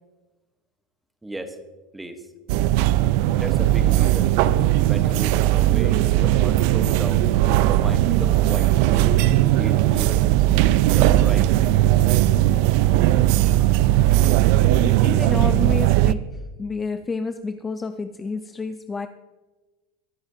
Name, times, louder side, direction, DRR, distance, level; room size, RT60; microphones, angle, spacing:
voice 1, 1.2-1.6 1.9-2.2 3.4-4.3 4.8-7.3 7.6-10.3 10.8-11.5, right 1 dB, 5° right, 7 dB, 1.0 m, -35 dB
sound 1, 2.5-16.1, right 14 dB, 55° right, 0.4 m, -18 dB
voice 2, 14.7-19.1, left 4 dB, 15° left, 9 dB, 0.4 m, -30 dB
24.5 x 10.0 x 2.8 m, 1.2 s
supercardioid pair, 160°, 0 cm